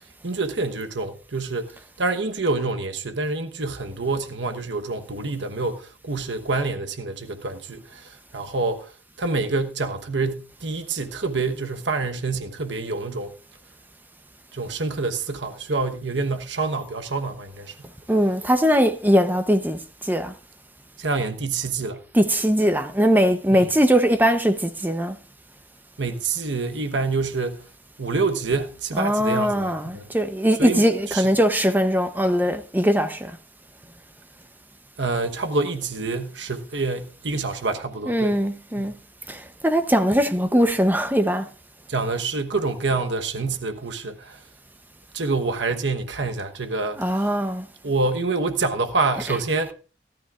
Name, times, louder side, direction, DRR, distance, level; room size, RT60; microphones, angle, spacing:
voice 1, 0.2-8.9 9.2-13.3 14.5-17.7 21.0-22.0 23.5-23.7 26.0-27.6 28.0-30.1 30.6-31.3 35.0-38.4 38.8-38.9 41.9-44.4 45.1-47.3 47.8-49.7, right 3 dB, 80° right, 1.2 m, -27 dB
voice 2, 18.1-19.8 20.1-20.3 22.1-25.1 29.0-33.3 38.1-38.9 39.3-41.5 47.0-47.7, equal, 10° right, 0.8 m, -20 dB
17.5 x 12.0 x 2.5 m
head